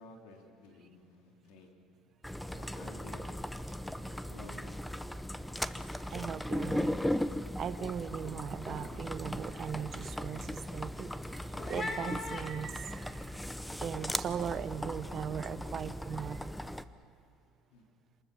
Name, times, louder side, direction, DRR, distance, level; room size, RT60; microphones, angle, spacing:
voice 1, 0.0-1.7 2.5-3.2 4.3-4.8 17.7-17.9, left 3 dB, 85° left, 1 dB, 3.7 m, -53 dB
sound 1, 2.2-16.8, left 1 dB, 5° left, 0.7 m, -38 dB
sound 2, 6.0-6.2 6.4-6.9 7.3-13.2, left 3 dB, 25° left, 2.2 m, -45 dB
voice 2, 6.1-7.0 7.6-11.1 11.5-13.3 13.8-16.7, right 8 dB, 45° right, 12 dB, 0.9 m, -39 dB
26.5 x 20.0 x 7.1 m, 2.5 s
cardioid pair, 120°, 0 cm